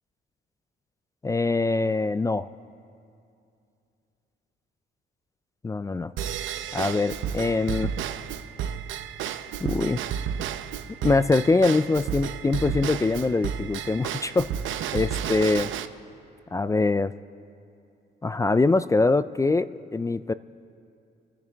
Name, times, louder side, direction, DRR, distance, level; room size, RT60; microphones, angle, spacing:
voice 1, 1.2-2.5 5.6-6.1 6.7-7.9 9.6-10.0 11.0-14.5 14.9-15.7 16.5-17.1 18.2-20.3, left 3 dB, 15° left, 15 dB, 0.3 m, -23 dB
Drum kit / Drum / Bell, 6.2-15.9, right 9 dB, 80° right, 0.7 m, -32 dB
28.5 x 10.5 x 3.4 m, 2.5 s
cardioid pair, 90°, 20 cm